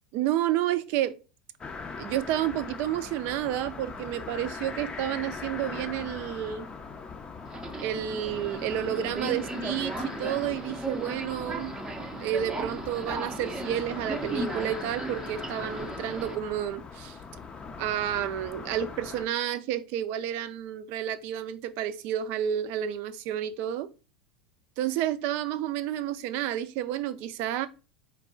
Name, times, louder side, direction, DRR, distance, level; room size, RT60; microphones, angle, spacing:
voice 1, 0.1-1.2 2.0-6.7 7.8-11.7 12.2-17.2 17.8-23.9 24.8-27.7, right 11 dB, 50° right, 0.5 m, -30 dB
sound 1, 1.6-19.3, left 4 dB, 20° left, 0.6 m, -41 dB
Subway metro underground, 7.4-16.3, right 2 dB, 15° right, 0.7 m, -36 dB
4.7 x 2.2 x 3.7 m
hypercardioid pair, 85°, 4 cm